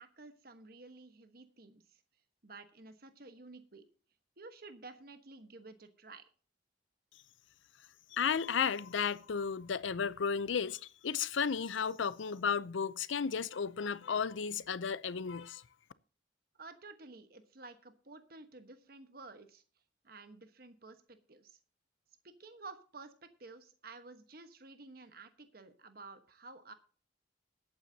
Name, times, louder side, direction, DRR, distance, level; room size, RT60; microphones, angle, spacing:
voice 1, 0.0-2.0 2.4-3.8 4.4-6.2 16.6-19.6 20.0-21.6 22.2-26.7, right 3 dB, 55° right, 1.2 m, -52 dB
voice 2, 8.1-15.6, left 6 dB, 85° left, 0.6 m, -34 dB
20.5 x 8.9 x 2.8 m
head